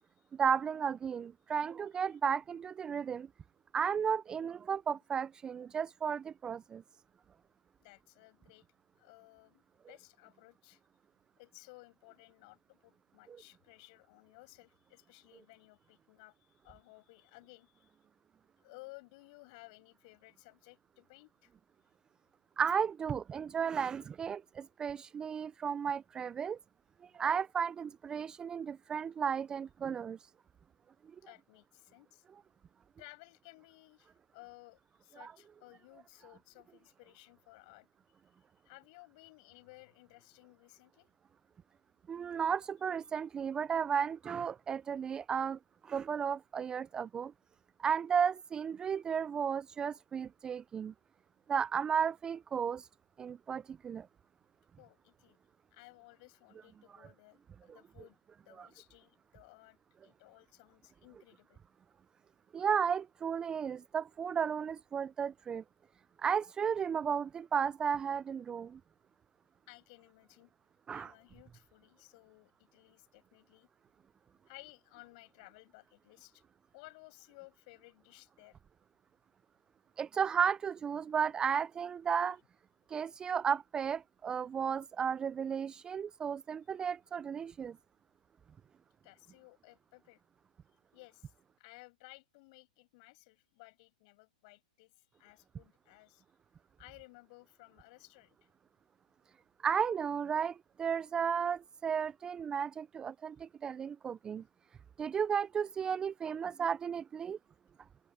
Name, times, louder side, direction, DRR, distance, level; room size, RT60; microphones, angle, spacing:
voice 1, 0.3-3.3 3.7-6.8 13.3-13.4 22.6-26.6 27.1-30.2 35.2-35.3 42.1-47.3 47.8-50.9 51.5-52.9 53.2-54.1 58.6-58.7 62.5-65.6 66.2-68.8 70.9-71.1 80.0-82.4 82.9-87.8 99.6-104.4 105.0-107.4, right 7 dB, 20° right, 0.4 m, -34 dB
voice 2, 7.8-8.7 9.0-10.8 11.4-18.0 18.6-21.5 31.2-32.2 33.0-37.9 38.6-41.1 54.8-55.4 55.7-61.6 69.7-70.5 70.9-73.7 74.5-76.4 76.7-78.6 89.0-90.2 90.9-96.2 96.8-98.5, left 26 dB, 50° left, 6.9 m, -58 dB
open air
hypercardioid pair, 125°, 4 cm